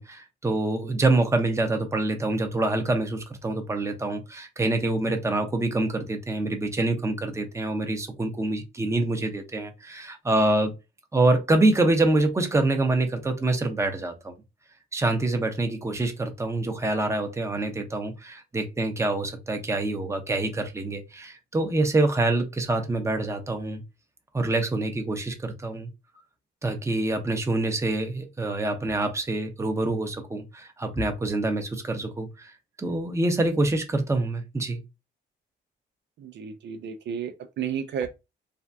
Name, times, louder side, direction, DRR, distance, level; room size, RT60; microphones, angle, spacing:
voice 1, 0.0-10.7 11.1-14.3 14.9-23.8 24.3-25.9 26.6-32.5 32.8-34.8, right 2 dB, 15° right, 0.7 m, -26 dB
voice 2, 36.2-38.1, right 8 dB, 65° right, 0.5 m, -32 dB
3.4 x 2.2 x 2.6 m
cardioid pair, 90°, 20 cm